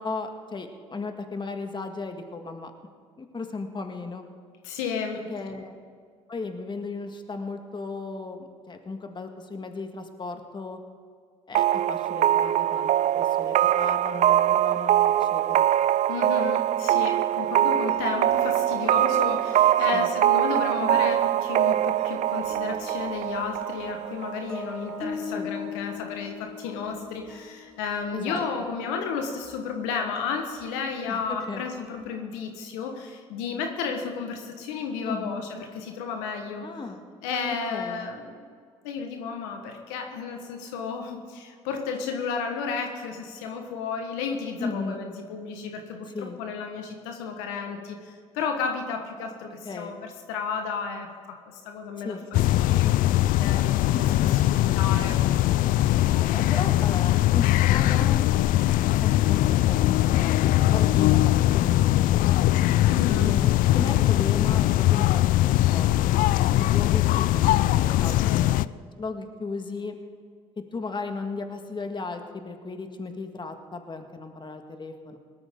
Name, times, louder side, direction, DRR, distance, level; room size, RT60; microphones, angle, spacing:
voice 1, 0.0-2.7 3.2-4.3 5.3-5.7 6.3-10.8 11.5-15.7 19.9-20.1 25.3-25.5 28.1-28.7 31.1-31.2 31.5-31.7 35.1-35.4 36.6-37.0 37.7-38.1 44.6-45.0 46.1-46.4 49.6-50.0 52.0-52.3 53.9-54.4 56.1-58.2 58.9-62.5 63.1-68.5 69.0-69.9 70.7-75.2, left 3 dB, 30° left, 6 dB, 1.7 m, -36 dB
voice 2, 4.6-5.3 16.1-36.6 37.2-38.5 38.8-52.2 52.6-53.1 53.4-56.1 62.8-63.4 68.2-68.5, left 5 dB, 85° left, 4 dB, 1.4 m, -33 dB
sound 1, 11.5-25.1, right 12 dB, 55° right, 0.4 m, -23 dB
sound 2, 17.9-18.5 18.9-19.0 19.8-29.8 30.2-30.6 31.2-32.1, left 5 dB, 5° left, 2.7 m, -42 dB
sound 3, 52.3-68.7, left 15 dB, 65° left, 0.4 m, -21 dB
18.5 x 12.5 x 3.8 m, 2.1 s
hypercardioid pair, 60°, 15 cm